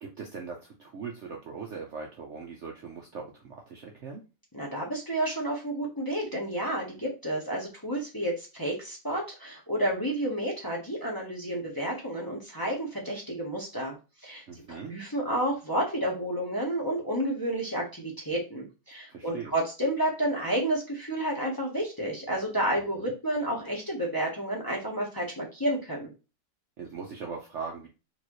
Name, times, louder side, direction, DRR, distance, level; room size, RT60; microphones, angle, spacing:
voice 1, 0.0-4.2 14.5-14.9 19.1-19.5 23.0-23.1 26.8-27.9, right 5 dB, 60° right, 1 dB, 0.8 m, -40 dB
voice 2, 4.5-14.0 14.2-26.1, right 1 dB, 15° left, -3 dB, 1.0 m, -30 dB
4.4 x 2.9 x 3.1 m, 0.30 s
omnidirectional pair, 1.7 m